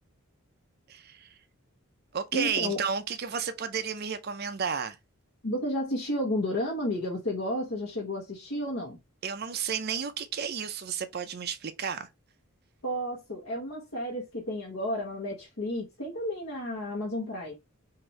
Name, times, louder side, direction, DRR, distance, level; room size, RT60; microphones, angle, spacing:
voice 1, 0.9-1.3 2.1-5.0 9.2-12.1, right 7 dB, 45° right, 0.5 m, -32 dB
voice 2, 2.3-2.8 5.4-9.0 12.8-17.5, left 1 dB, 70° left, 1.2 m, -32 dB
5.7 x 2.6 x 3.1 m
head